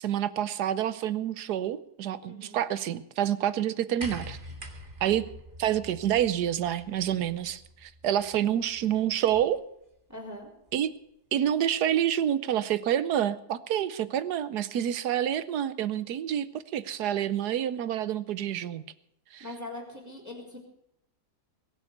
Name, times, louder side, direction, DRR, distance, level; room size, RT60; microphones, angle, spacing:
voice 1, 0.0-4.4 5.0-5.2 5.6-9.6 10.7-10.9 11.3-18.8 19.3-19.4, right 10 dB, 75° right, 15 dB, 1.3 m, -28 dB
voice 2, 2.2-2.6 10.1-10.5 19.4-20.6, left 1 dB, 10° right, -3 dB, 3.9 m, -41 dB
sound 1, 4.0-9.6 10.7-10.8, equal, 30° right, 2.0 m, -45 dB
21.5 x 7.2 x 7.9 m, 0.80 s
omnidirectional pair, 1.7 m